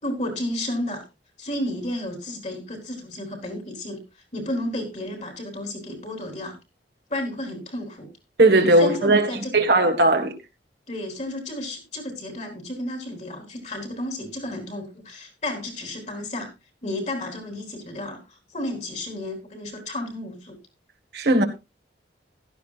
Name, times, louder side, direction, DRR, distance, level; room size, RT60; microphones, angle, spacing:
voice 1, 0.0-1.0 1.4-4.0 4.3-6.6 7.1-8.1 8.8-9.6 10.9-16.5 16.8-20.6, left 1 dB, 40° left, 3.9 m, -32 dB
voice 2, 8.4-9.3 9.5-10.3 21.1-21.4, right 2 dB, 60° right, 1.7 m, -17 dB
15.5 x 13.0 x 2.5 m
head